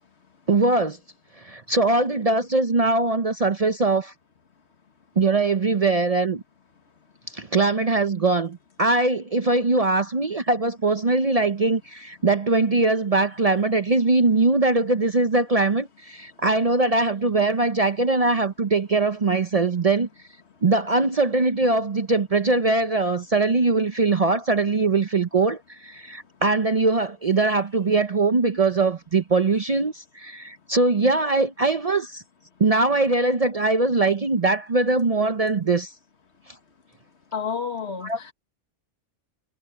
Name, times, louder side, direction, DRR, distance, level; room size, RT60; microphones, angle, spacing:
voice 1, 0.5-1.0 1.4-4.1 5.2-6.4 7.3-20.1 20.6-32.2 32.6-35.9 38.1-38.2, right 3 dB, 40° right, 0.7 m, -21 dB
voice 2, 37.3-38.3, left 6 dB, 65° left, 1.8 m, -30 dB
omnidirectional pair, 1.2 m